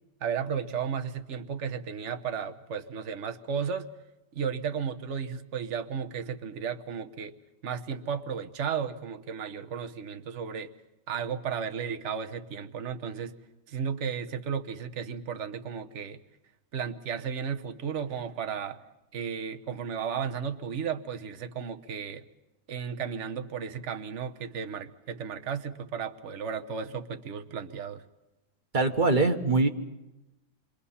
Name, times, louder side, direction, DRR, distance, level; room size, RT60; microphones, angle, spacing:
voice 1, 0.2-3.9 4.3-7.3 7.6-10.7 11.1-13.3 13.7-16.2 16.7-18.8 19.1-22.2 22.7-28.0, right 7 dB, 45° right, 7 dB, 1.3 m, -34 dB
voice 2, 28.7-29.7, right 3 dB, 30° right, 6 dB, 1.4 m, -23 dB
28.5 x 23.5 x 5.7 m, 0.96 s
omnidirectional pair, 1.8 m